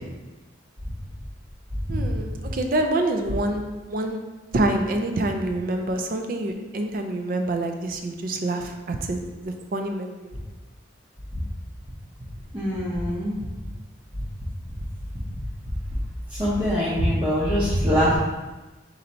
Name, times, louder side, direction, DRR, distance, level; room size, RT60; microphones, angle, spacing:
voice 1, 1.9-4.2 4.5-10.4, right 1 dB, 45° right, 4 dB, 0.4 m, -27 dB
voice 2, 12.5-13.3 16.4-18.2, equal, 25° right, -10 dB, 0.7 m, -23 dB
4.0 x 2.6 x 4.3 m, 1.2 s
head